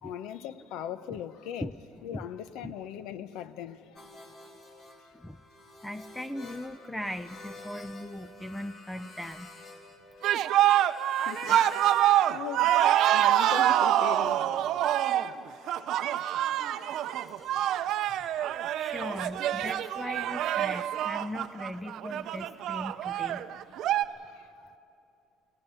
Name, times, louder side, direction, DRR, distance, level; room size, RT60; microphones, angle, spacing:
voice 1, 0.0-1.7 2.0-4.1 10.9-11.7 12.0-14.4 16.8-17.1 17.9-18.8 23.5-23.6 24.1-24.8, left 9 dB, 75° left, 0.8 m, -41 dB
sound 1, 4.0-12.1 12.4-17.8, left 2 dB, 35° left, 2.5 m, -50 dB
voice 2, 5.8-9.5 18.7-23.4, left 1 dB, 5° left, 0.4 m, -39 dB
sound 2, 10.2-24.0, right 12 dB, 60° right, 0.6 m, -26 dB
29.5 x 16.5 x 5.6 m
cardioid pair, 140°, 0 cm